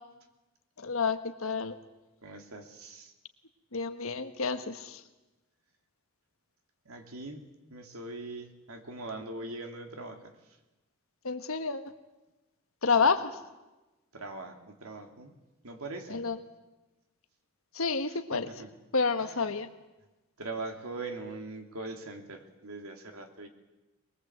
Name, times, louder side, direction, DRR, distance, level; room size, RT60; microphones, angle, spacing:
voice 1, 0.8-1.7 3.7-5.0 11.2-11.8 12.8-13.3 16.1-16.4 17.8-18.5 18.9-19.7, left 4 dB, 75° left, 8 dB, 1.5 m, -29 dB
voice 2, 2.2-3.1 6.8-10.3 13.0-13.2 14.1-15.3 15.6-16.3 18.1-18.7 19.2-19.5 20.4-23.5, right 2 dB, 85° right, 4 dB, 2.8 m, -42 dB
23.0 x 21.0 x 8.0 m, 1.1 s
head